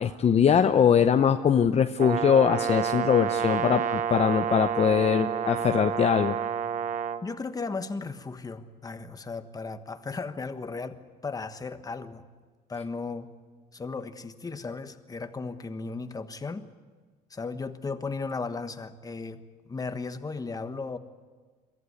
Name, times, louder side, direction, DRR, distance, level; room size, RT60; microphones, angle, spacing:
voice 1, 0.0-6.4, left 7 dB, 40° left, 8 dB, 0.8 m, -22 dB
Brass instrument, 2.0-7.2, right 8 dB, 50° right, 1.0 m, -29 dB
voice 2, 7.2-12.2 12.7-13.3 13.7-16.7 17.3-21.0, left 4 dB, 20° left, 9 dB, 1.3 m, -36 dB
23.5 x 15.0 x 9.6 m, 1.4 s
cardioid pair, 110°, 17 cm